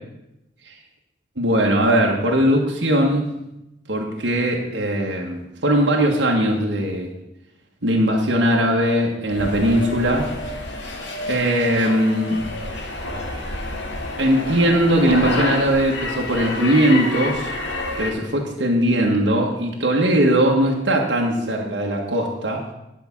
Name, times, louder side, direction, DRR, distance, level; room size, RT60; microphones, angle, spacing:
voice 1, 1.4-3.3 3.9-7.1 7.8-10.3 11.3-12.4 14.2-17.5 18.0-22.6, right 1 dB, 80° right, -1 dB, 1.5 m, -19 dB
sound 1, 9.3-18.1, left 2 dB, 85° left, 1.7 m, -28 dB
10.5 x 5.3 x 7.3 m, 0.90 s
head